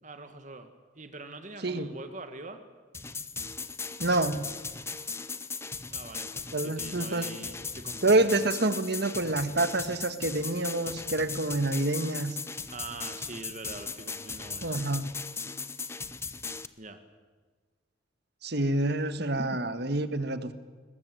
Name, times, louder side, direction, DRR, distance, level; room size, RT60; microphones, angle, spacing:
voice 1, 0.0-2.6 5.9-8.4 12.7-14.9 16.8-17.0 19.4-19.5, right 2 dB, 40° right, 8 dB, 1.7 m, -44 dB
sound 1, 2.9-16.7, left 4 dB, 15° left, 0.7 m, -38 dB
voice 2, 4.0-4.5 6.5-7.3 8.0-12.4 14.6-15.1 18.4-20.5, right 2 dB, 55° right, 10 dB, 1.6 m, -27 dB
21.5 x 20.5 x 9.2 m, 1.4 s
head